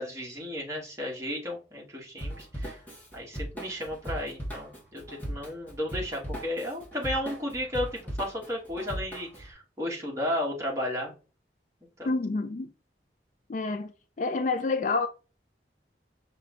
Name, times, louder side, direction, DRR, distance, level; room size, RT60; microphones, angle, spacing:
voice 1, 0.0-2.8 3.1-11.1 12.0-12.1, left 1 dB, 15° right, 1.5 m, -34 dB
Drum kit / Drum, 2.2-9.5, equal, 10° left, 1.0 m, -38 dB
voice 2, 12.1-12.7 13.5-13.9 14.2-15.1, left 3 dB, 45° left, 0.4 m, -28 dB
5.4 x 2.3 x 3.8 m
head